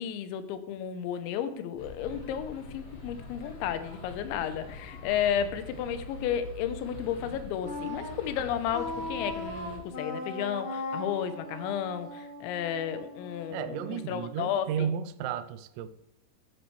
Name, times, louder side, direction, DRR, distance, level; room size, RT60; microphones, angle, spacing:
voice 1, 0.0-14.9, left 9 dB, 80° left, 10 dB, 2.9 m, -33 dB
sound 1, 1.8-9.8, left 3 dB, 60° left, 1.6 m, -44 dB
Wind instrument woodwind instrument, 7.6-14.5, left 2 dB, 30° left, 1.2 m, -39 dB
voice 2, 13.5-15.9, right 8 dB, 85° right, 12 dB, 2.5 m, -33 dB
13.0 x 7.7 x 3.2 m, 0.84 s
omnidirectional pair, 5.7 m